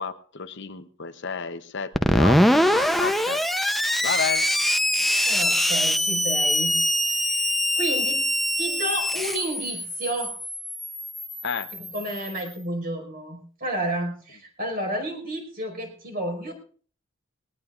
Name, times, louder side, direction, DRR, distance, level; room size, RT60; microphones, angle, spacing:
voice 1, 0.0-3.7 4.0-4.5 11.4-11.7, left 5 dB, 55° left, 10 dB, 0.8 m, -31 dB
Screech, 1.9-12.4, equal, ahead, 0.6 m, -23 dB
voice 2, 5.2-6.8 7.0-8.2 8.6-10.4 11.7-16.5, right 1 dB, 45° right, 3 dB, 5.1 m, -31 dB
21.0 x 18.5 x 2.5 m, 0.43 s
head